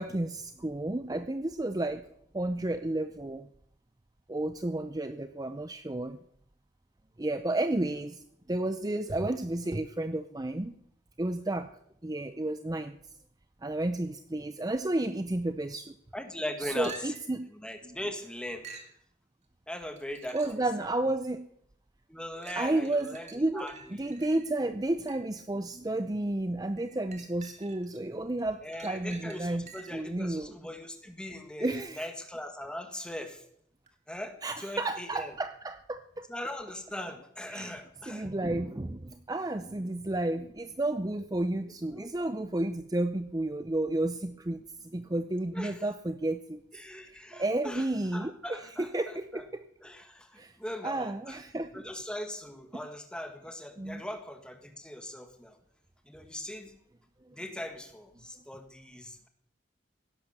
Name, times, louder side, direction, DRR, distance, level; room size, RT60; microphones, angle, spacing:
voice 1, 0.0-2.1 2.3-3.5 4.3-6.2 7.2-10.7 11.2-11.7 12.0-13.0 13.6-15.9 16.6-17.5 17.8-18.0 20.3-21.5 22.5-30.5 31.6-32.1 34.4-36.3 37.5-37.8 38.1-44.6 44.9-46.6 47.0-49.6 50.4-50.6 50.8-51.8 53.8-54.0 57.3-57.4, right 2 dB, 20° right, 10 dB, 0.6 m, -32 dB
voice 2, 16.1-17.1 17.5-18.7 19.7-20.6 22.1-23.3 23.5-24.1 28.6-33.4 34.1-35.3 36.3-38.3 41.9-42.1 45.5-45.8 46.7-47.8 48.1-49.4 49.8-51.4 51.7-55.6 56.1-56.7 57.3-59.3, left 1 dB, 5° left, 6 dB, 1.7 m, -40 dB
sound 1, 16.8-17.4 18.6-19.0 20.0-20.7 21.3-21.4 22.4-25.4 26.8-28.0 28.4-30.1 33.9-34.0, right 5 dB, 35° right, 2.2 m, -50 dB
16.5 x 11.5 x 6.7 m, 0.71 s
head